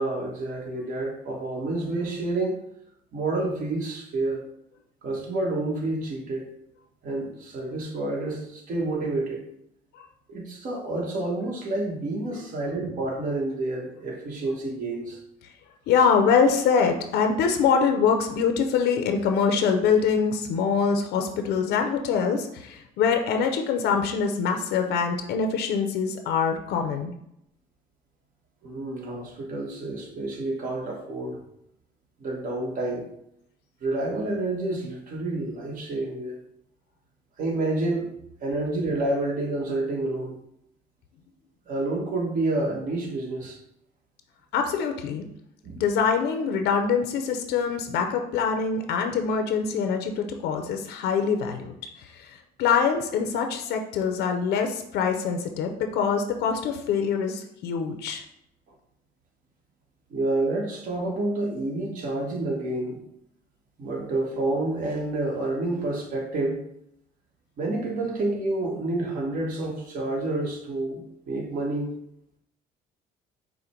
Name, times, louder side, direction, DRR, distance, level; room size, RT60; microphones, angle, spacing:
voice 1, 0.0-2.6 3.1-4.4 5.0-6.5 7.0-9.4 10.3-15.2 28.6-31.4 32.2-33.1 33.8-36.4 37.4-40.4 41.7-43.6 45.6-45.8 60.1-63.0 63.8-66.6 67.6-71.0 71.3-71.9, right 2 dB, 55° right, 0 dB, 1.3 m, -29 dB
voice 2, 15.9-27.1 44.5-45.2 45.7-58.2, left 6 dB, 80° left, 5 dB, 0.6 m, -24 dB
5.1 x 2.1 x 4.3 m, 0.76 s
cardioid pair, 110°, 17 cm